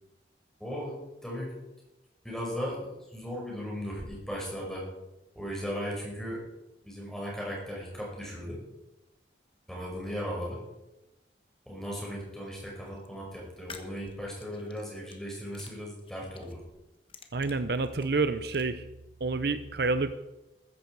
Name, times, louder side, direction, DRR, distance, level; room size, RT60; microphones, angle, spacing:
voice 1, 0.6-1.5 2.2-4.9 5.3-6.4 6.8-8.6 9.7-10.6 11.7-16.6, equal, 5° left, -3 dB, 5.5 m, -37 dB
sound 1, 12.7-13.1 13.6-15.2 15.5-16.6 16.9-18.6, left 5 dB, 30° left, 1.3 m, -50 dB
voice 2, 17.3-18.8 19.2-20.1, right 3 dB, 60° right, 12 dB, 0.7 m, -28 dB
15.0 x 14.0 x 4.7 m, 0.99 s
head